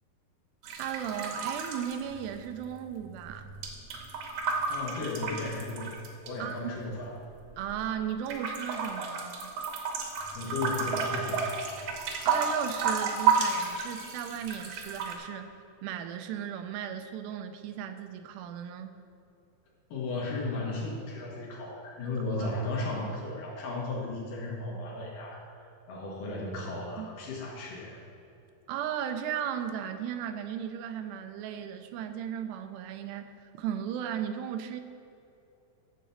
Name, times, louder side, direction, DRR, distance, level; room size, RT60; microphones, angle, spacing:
sound 1, 0.6-2.7 2.9-6.3 6.9-7.9 8.3-15.2, right 5 dB, 70° right, 2.5 m, -32 dB
voice 1, 0.8-3.6 6.4-6.7 7.6-9.5 12.2-15.5 15.8-19.0 22.4-22.5 27.0-27.1 28.7-34.8, right 9 dB, 85° right, 8 dB, 2.7 m, -36 dB
voice 2, 4.7-6.0 6.2-7.2 10.3-11.5 19.9-28.0, left 2 dB, 60° left, -3 dB, 2.8 m, -35 dB
11.0 x 5.1 x 7.1 m, 2.9 s
omnidirectional pair, 4.8 m